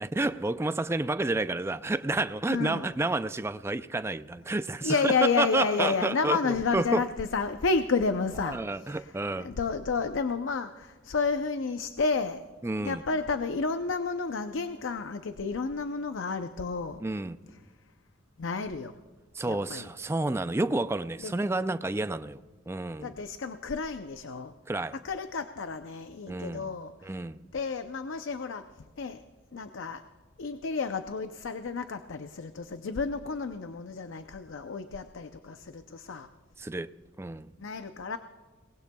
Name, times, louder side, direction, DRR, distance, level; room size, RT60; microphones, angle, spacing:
voice 1, 0.0-7.0 8.5-9.5 12.6-13.0 17.0-17.4 19.3-22.4 22.7-23.1 24.7-24.9 26.3-26.7 27.0-27.4 36.6-36.9 37.2-37.5, right 2 dB, 15° right, 0.3 m, -30 dB
voice 2, 2.5-2.9 4.8-12.4 12.8-17.0 18.4-18.9 19.4-19.9 21.2-21.3 23.0-24.5 25.0-27.1 27.5-28.7 29.0-29.2 29.5-30.0 30.4-36.3 37.6-38.2, left 4 dB, 85° left, 0.6 m, -31 dB
29.5 x 19.0 x 2.3 m
head